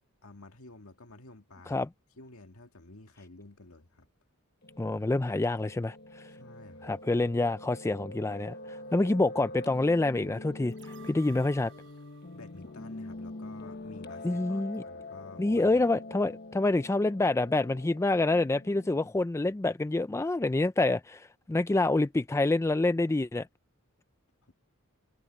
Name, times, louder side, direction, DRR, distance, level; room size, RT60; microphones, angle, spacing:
voice 1, 0.2-1.9 2.2-4.1 6.4-6.9 11.3-11.4 12.3-15.9 24.4-24.5, left 2 dB, 70° left, 2.1 m, -51 dB
Piano, 4.6-19.1, left 2 dB, 50° left, 1.2 m, -45 dB
voice 2, 4.8-6.3 6.8-11.7 14.2-14.8 15.4-23.5, left 2 dB, 15° left, 0.3 m, -27 dB
sound 1, 10.7-13.8 14.2-14.3, right 6 dB, 60° right, 5.6 m, -55 dB
head